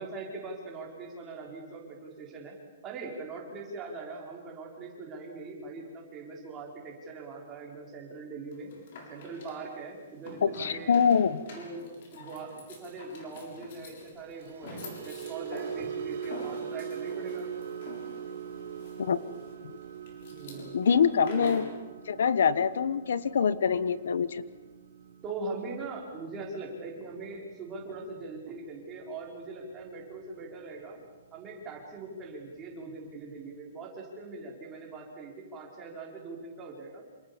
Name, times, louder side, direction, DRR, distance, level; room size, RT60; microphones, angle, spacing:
voice 1, 0.0-2.5 2.8-8.7 9.1-11.0 11.5-17.6 20.3-20.7 21.3-21.6 25.2-31.0 31.3-37.0, right 3 dB, 15° right, -1 dB, 5.2 m, -41 dB
sound 1, 8.5-21.8, left 3 dB, 40° left, 7.0 m, -47 dB
voice 2, 10.4-11.4 19.0-19.2 20.7-21.6 22.1-24.4, left 6 dB, 65° left, 16 dB, 1.2 m, -24 dB
sound 2, 14.2-30.6 30.9-31.2 31.6-31.8, right 7 dB, 60° right, 2.4 m, -42 dB
28.5 x 27.0 x 7.2 m, 1.2 s
hypercardioid pair, 180°, 0 cm